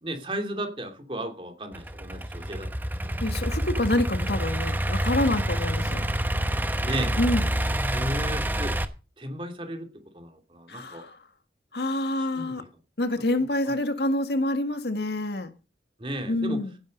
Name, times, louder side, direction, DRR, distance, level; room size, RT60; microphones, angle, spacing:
voice 1, 0.0-2.7 6.8-7.2 7.9-8.7 9.2-9.9 10.1-11.0 12.2-12.6 13.4-13.7 16.0-16.6, right 1 dB, 30° right, 5 dB, 2.7 m, -34 dB
Idling / Accelerating revving vroom, 1.7-8.9, right 1 dB, 10° right, 0.9 m, -27 dB
voice 2, 3.2-6.1 7.2-7.4 10.7-11.2 11.7-12.6 13.0-15.5 16.3-16.7, left 1 dB, 70° left, 8 dB, 1.8 m, -27 dB
16.0 x 9.4 x 5.2 m, 0.33 s
head